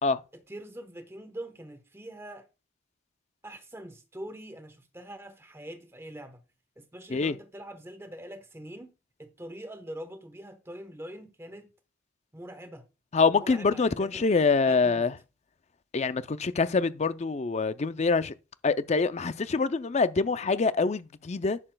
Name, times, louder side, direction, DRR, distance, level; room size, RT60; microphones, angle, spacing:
voice 1, 0.3-2.5 3.4-6.4 6.8-8.9 9.2-11.7 12.3-12.9 13.3-15.1, right 1 dB, 10° right, 1.0 m, -43 dB
voice 2, 13.1-15.1 15.9-18.3 18.6-21.6, left 4 dB, 35° left, 0.4 m, -25 dB
11.0 x 6.7 x 2.2 m
head